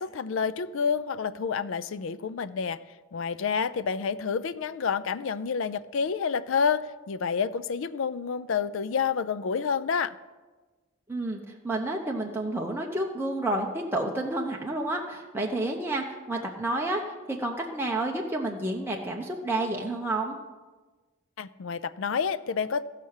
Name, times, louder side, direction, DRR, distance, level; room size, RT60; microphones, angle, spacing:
voice 1, 0.0-2.8 3.1-10.1 21.4-22.8, left 6 dB, 65° left, 15 dB, 0.4 m, -29 dB
voice 2, 11.1-17.0 17.3-20.4, right 2 dB, 10° right, -1 dB, 0.7 m, -30 dB
15.0 x 5.8 x 6.4 m, 1.3 s
head